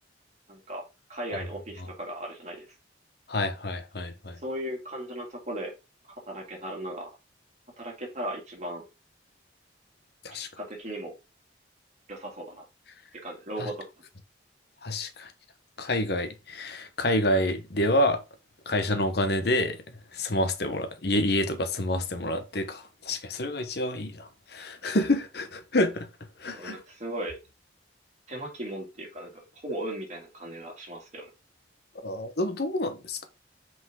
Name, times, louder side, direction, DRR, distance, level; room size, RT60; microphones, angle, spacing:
voice 1, 0.5-0.8 1.1-2.6 4.4-5.7 6.3-7.1 7.8-8.8 10.3-11.1 12.1-12.6 13.2-13.7 26.5-27.4 28.3-31.3, right 1 dB, 40° right, 2.5 m, -37 dB
voice 2, 3.3-4.4 10.2-10.5 13.6-13.7 14.8-15.3 15.8-18.2 18.7-19.8 20.1-26.1 26.4-26.8 32.0-33.3, left 1 dB, 60° left, 1.0 m, -28 dB
6.1 x 5.1 x 3.7 m
head